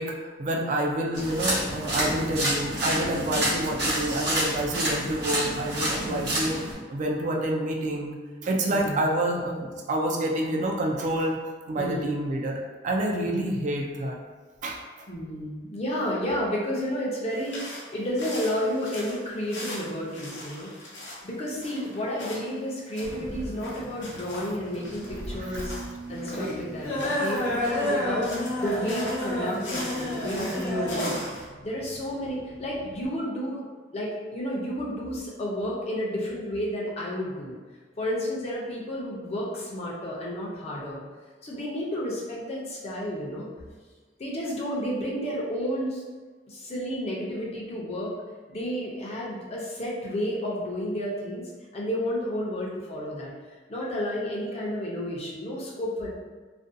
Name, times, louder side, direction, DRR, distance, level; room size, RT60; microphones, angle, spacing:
voice 1, 0.0-6.6 6.9-8.2 8.4-11.4 11.7-14.2 14.6-14.8 24.8-27.2, right 1 dB, 45° right, 0 dB, 0.3 m, -28 dB
sound 1, 1.1-6.7, right 1 dB, 65° right, 0.8 m, -28 dB
voice 2, 6.0-6.3 8.6-9.1 11.7-12.1 13.2-13.4 15.1-20.7 21.2-25.8 26.1-31.2 31.6-33.6 33.9-37.6 38.0-41.0 41.4-43.5 44.2-46.0 46.5-48.1 48.5-53.3 53.7-56.1, equal, 35° left, -5 dB, 0.5 m, -31 dB
sound 2, 17.3-31.4, left 1 dB, 85° left, 0.7 m, -40 dB
sound 3, 23.0-33.1, left 1 dB, 60° left, 0.9 m, -31 dB
2.4 x 2.2 x 2.5 m, 1.4 s
head